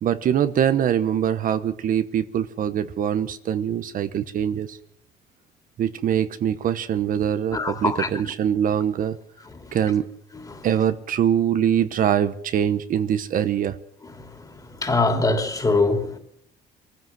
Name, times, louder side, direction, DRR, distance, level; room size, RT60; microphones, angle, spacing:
voice 1, 0.0-4.8 5.8-9.2 9.7-10.1 10.6-13.8, right 9 dB, 55° right, 1.1 m, -23 dB
voice 2, 7.5-8.1 10.5-10.7 14.8-16.2, left 3 dB, 20° left, 3.4 m, -22 dB
22.5 x 15.0 x 7.7 m
cardioid pair, 110°, 17 cm